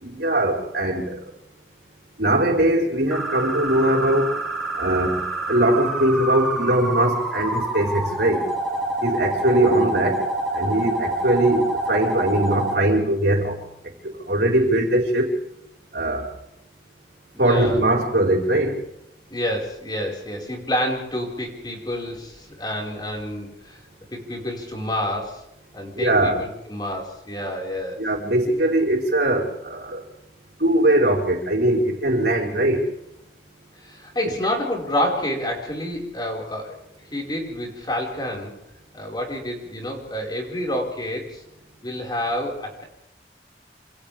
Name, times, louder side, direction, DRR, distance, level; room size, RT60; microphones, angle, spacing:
voice 1, 0.0-1.2 2.2-4.4 4.8-5.2 5.5-8.4 9.0-10.2 10.5-13.6 14.3-15.3 15.9-16.3 17.4-18.8 26.0-26.4 28.0-30.0 30.6-32.8 34.2-34.3, right 1 dB, 65° right, -1 dB, 5.1 m, -21 dB
sound 1, 3.1-12.7, right 2 dB, ahead, 4.3 m, -27 dB
voice 2, 17.3-17.8 19.3-23.8 24.1-25.4 25.7-28.0 33.8-36.8 37.1-38.5 38.9-41.4 41.8-42.8, left 1 dB, 25° left, 0 dB, 5.4 m, -28 dB
28.0 x 27.5 x 3.6 m, 0.82 s
head